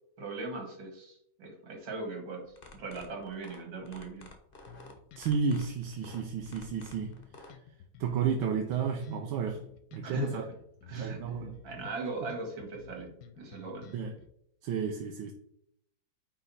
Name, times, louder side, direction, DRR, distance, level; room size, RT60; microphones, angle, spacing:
voice 1, 0.2-2.4 2.7-4.3 10.0-10.5 10.9-11.2 11.6-14.0, right 2 dB, 70° right, 1 dB, 2.6 m, -39 dB
sound 1, 2.5-7.5, left 3 dB, 35° left, 1.1 m, -51 dB
sound 2, 4.7-14.3, left 7 dB, 65° left, 1.3 m, -52 dB
voice 2, 5.2-7.1 8.0-9.6 9.9-10.5 10.9-11.6 13.9-14.1 14.6-15.3, right 6 dB, 85° right, 3 dB, 1.6 m, -32 dB
9.3 x 4.0 x 4.2 m, 0.71 s
omnidirectional pair, 2.2 m